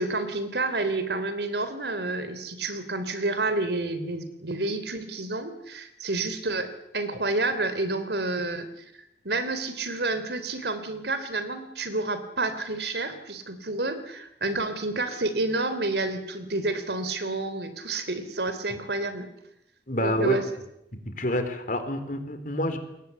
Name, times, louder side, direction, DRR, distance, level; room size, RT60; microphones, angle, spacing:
voice 1, 0.0-8.7 9.2-19.3 20.0-20.4, right 2 dB, 70° right, 11 dB, 3.3 m, -29 dB
voice 2, 19.9-20.4 20.9-22.8, left 1 dB, 45° left, 8 dB, 3.9 m, -27 dB
28.5 x 22.0 x 8.2 m, 0.84 s
head